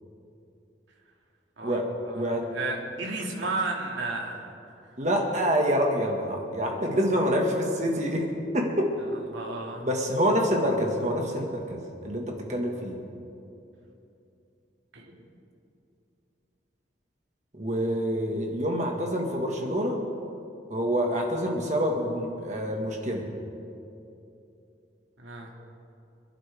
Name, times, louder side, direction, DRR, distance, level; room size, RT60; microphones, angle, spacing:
voice 1, 1.6-4.5 9.3-9.9 14.9-15.2 25.2-25.5, right 3 dB, 85° right, -1 dB, 2.3 m, -33 dB
voice 2, 5.0-8.2 8.5-8.9 9.8-13.0 17.5-20.0 20.7-23.3, equal, 40° right, 0 dB, 1.7 m, -26 dB
27.0 x 11.0 x 3.5 m, 2.7 s
head